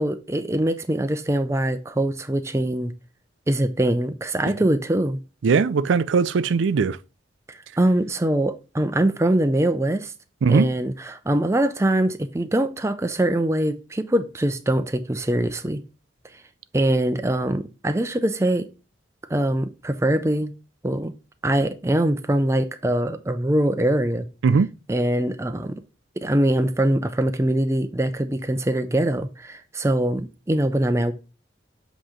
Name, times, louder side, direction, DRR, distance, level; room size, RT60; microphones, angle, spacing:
voice 1, 0.0-2.9 3.5-5.2 7.5-10.1 10.5-15.8 16.7-18.7 19.3-20.5 20.8-21.1 21.4-24.3 24.9-25.8 26.2-31.1, right 1 dB, 15° right, 0.4 m, -23 dB
voice 2, 5.4-7.0 10.4-10.7 24.4-24.7, right 5 dB, 80° right, 0.4 m, -19 dB
7.6 x 3.0 x 4.8 m
head